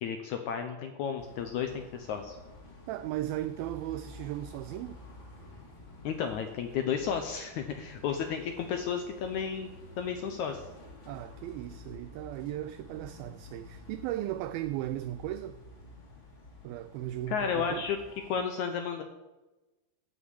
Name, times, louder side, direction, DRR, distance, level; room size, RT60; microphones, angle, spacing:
voice 1, 0.0-2.4 6.0-9.7 10.0-10.6 17.3-18.0 18.3-19.0, left 7 dB, 85° left, 1.6 m, -32 dB
sound 1, 1.2-18.4, left 2 dB, 35° left, 2.6 m, -50 dB
voice 2, 2.9-5.0 11.1-15.6 16.6-17.8, right 14 dB, 85° right, 2.2 m, -36 dB
14.5 x 6.3 x 8.3 m
omnidirectional pair, 4.6 m